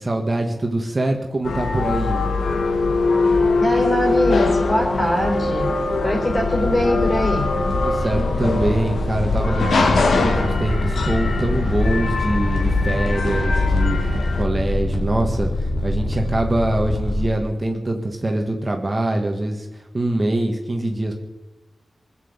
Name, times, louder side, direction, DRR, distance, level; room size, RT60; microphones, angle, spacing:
voice 1, 0.0-2.2 7.7-21.1, right 1 dB, 25° right, 3 dB, 1.7 m, -24 dB
sound 1, 1.4-14.4, left 3 dB, 80° left, 1.8 m, -22 dB
voice 2, 3.6-5.7 6.0-7.6 10.3-10.7, equal, 35° left, 1 dB, 4.5 m, -22 dB
sound 2, 6.3-17.3, left 1 dB, 60° left, 3.3 m, -25 dB
22.0 x 7.8 x 8.2 m, 1.0 s
wide cardioid pair, 125°, 0 cm